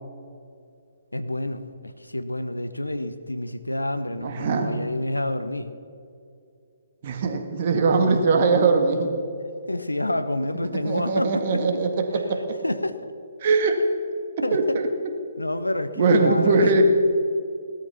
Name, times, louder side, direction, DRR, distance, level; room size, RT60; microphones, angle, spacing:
voice 1, 1.1-5.7 7.9-8.2 9.7-11.6 12.6-12.9 14.4-14.8 15.4-16.8, left 1 dB, 85° left, 11 dB, 1.1 m, -28 dB
voice 2, 4.2-4.7 7.0-9.1 10.8-12.6 13.4-13.8 14.5-14.9 16.0-16.8, right 4 dB, 40° right, 4 dB, 2.0 m, -21 dB
18.0 x 13.0 x 5.8 m, 2.4 s
figure-of-eight pair, 130°, 0 cm